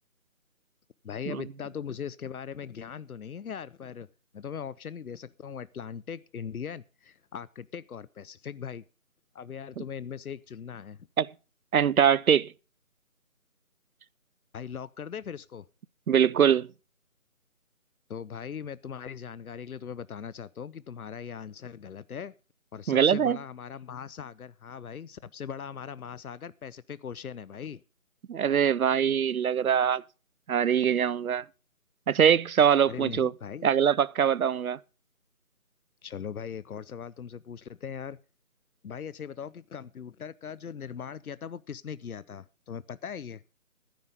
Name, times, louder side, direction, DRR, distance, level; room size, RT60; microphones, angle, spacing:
voice 1, 1.0-4.1 4.3-8.8 9.3-11.0 14.5-15.7 18.1-22.3 22.7-27.8 32.9-33.7 36.0-38.2 38.8-43.4, left 7 dB, 90° left, 0.7 m, -40 dB
voice 2, 11.7-12.5 16.1-16.7 22.9-23.4 28.3-30.0 30.5-31.4 32.1-33.3 33.6-34.8, right 8 dB, 75° right, 0.6 m, -23 dB
12.5 x 10.5 x 5.2 m
figure-of-eight pair, 170°, 43 cm